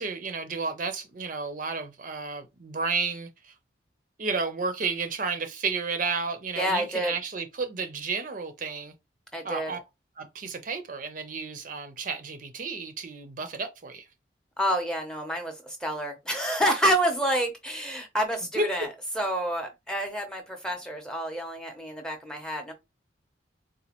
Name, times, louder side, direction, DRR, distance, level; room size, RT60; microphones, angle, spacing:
voice 1, 0.0-3.5 4.2-8.9 9.4-9.8 10.2-14.1 18.6-18.7, right 4 dB, 45° right, 0.5 m, -32 dB
voice 2, 6.6-7.2 9.3-9.7 14.6-18.9 19.1-22.7, equal, 5° left, 0.6 m, -28 dB
4.1 x 2.1 x 2.9 m
head